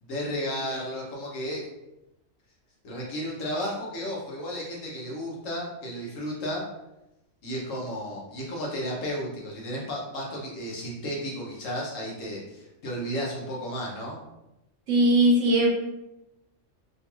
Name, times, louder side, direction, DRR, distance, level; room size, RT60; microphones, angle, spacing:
voice 1, 0.0-1.6 2.8-6.6 7.4-14.2, equal, 80° left, -3 dB, 1.2 m, -33 dB
voice 2, 14.9-15.7, right 1 dB, 75° right, -1 dB, 1.0 m, -19 dB
3.1 x 2.3 x 3.0 m, 0.92 s
omnidirectional pair, 1.3 m